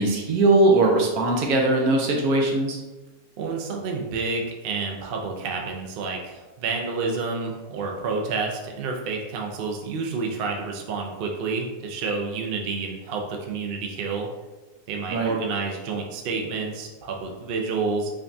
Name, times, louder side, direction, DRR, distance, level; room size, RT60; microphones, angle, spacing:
voice 1, 0.0-2.8 15.1-15.3, right 2 dB, 70° right, 0 dB, 1.2 m, -20 dB
voice 2, 3.4-14.3 14.9-18.1, right 4 dB, 90° right, 1 dB, 0.5 m, -29 dB
5.0 x 2.3 x 2.6 m, 1.2 s
omnidirectional pair, 1.7 m